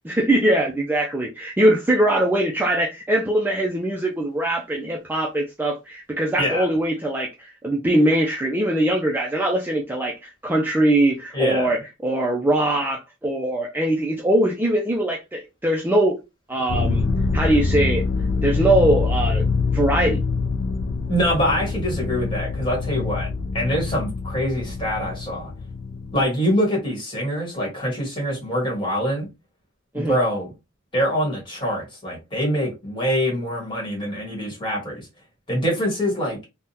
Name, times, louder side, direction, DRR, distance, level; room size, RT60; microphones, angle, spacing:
voice 1, 0.0-16.2 16.5-17.1 17.3-18.1 18.4-19.4 19.7-20.2 29.9-30.2, right 1 dB, 10° right, 0.4 m, -21 dB
voice 2, 11.3-11.7 21.1-23.3 23.5-25.5 26.1-29.3 29.9-30.5 30.9-35.1 35.5-36.4, equal, 25° left, 1.5 m, -24 dB
sound 1, 16.7-26.2, left 4 dB, 75° left, 0.4 m, -25 dB
3.6 x 2.1 x 2.7 m
head